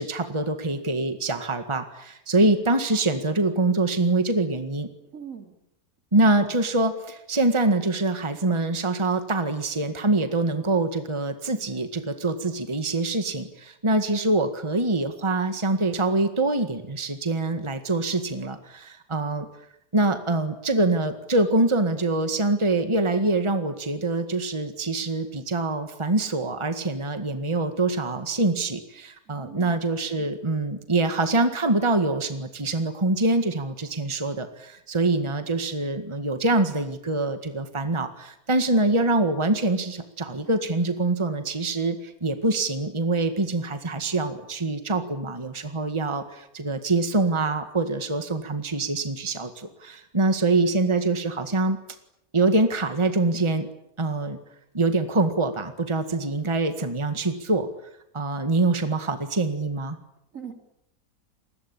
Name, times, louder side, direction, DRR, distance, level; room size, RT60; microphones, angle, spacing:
voice 1, 0.0-4.9 6.1-19.5 19.9-51.8 52.3-53.7 54.0-54.4 54.7-57.7 58.1-60.0, right 2 dB, 20° right, 8 dB, 1.9 m, -24 dB
voice 2, 5.1-5.5 29.3-29.8 60.3-60.5, right 7 dB, 60° right, 6 dB, 3.4 m, -41 dB
28.5 x 21.0 x 8.8 m, 0.79 s
omnidirectional pair, 1.5 m